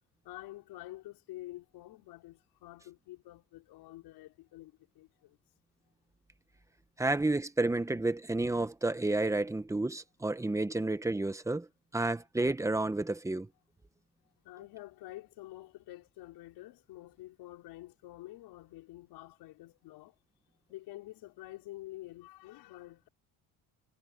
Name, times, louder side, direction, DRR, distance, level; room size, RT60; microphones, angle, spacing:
voice 1, 0.2-5.4 14.4-20.2 20.7-23.1, left 16 dB, 75° left, 5.3 m, -48 dB
voice 2, 7.0-11.7 11.9-13.5, right 2 dB, 10° right, 1.2 m, -30 dB
cardioid pair, 125°, 39 cm